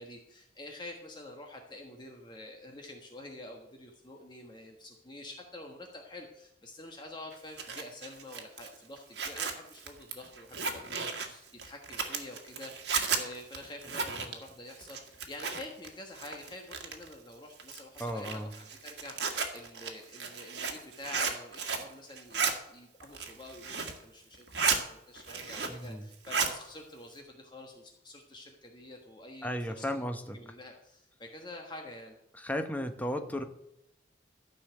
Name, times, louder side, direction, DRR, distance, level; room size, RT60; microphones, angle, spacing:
voice 1, 0.0-30.0 30.3-32.2, left 2 dB, 25° left, 2 dB, 1.3 m, -47 dB
Zipper (clothing), 7.3-15.9 16.1-17.1 17.6-21.9 22.2-22.5 23.0-24.0 24.3-24.8 25.2-25.9 26.1-26.5, right 5 dB, 70° right, 1.8 m, -34 dB
voice 2, 18.0-18.5 25.7-26.1 29.4-30.4 32.4-33.4, equal, 10° left, 6 dB, 1.0 m, -34 dB
13.5 x 5.7 x 7.8 m, 0.83 s
head